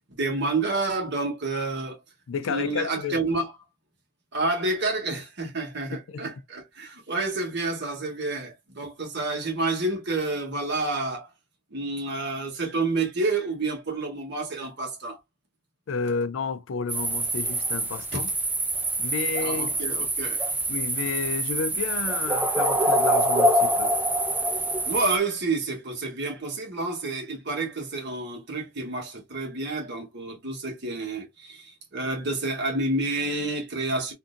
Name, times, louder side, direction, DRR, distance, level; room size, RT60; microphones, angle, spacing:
voice 1, 0.2-2.0 2.5-3.5 4.3-11.3 11.7-15.2 18.1-18.2 19.4-20.4 24.9-34.1, right 2 dB, 60° right, 1.3 m, -29 dB
voice 2, 2.3-3.2 6.1-6.3 15.9-18.3 19.0-19.8 20.7-23.9, left 5 dB, 90° left, 0.4 m, -31 dB
sound 1, 16.9-25.2, right 1 dB, 10° right, 0.5 m, -25 dB
3.7 x 2.6 x 2.5 m
head